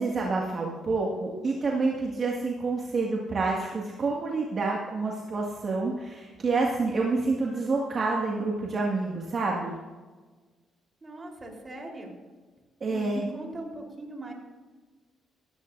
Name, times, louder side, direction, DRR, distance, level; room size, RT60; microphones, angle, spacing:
voice 1, 0.0-9.8 12.8-13.2, right 3 dB, 45° right, -3 dB, 2.1 m, -28 dB
voice 2, 11.0-12.1 12.9-14.3, right 1 dB, 25° right, 0 dB, 4.1 m, -39 dB
17.5 x 14.5 x 2.7 m, 1.4 s
cardioid pair, 90°, 0 cm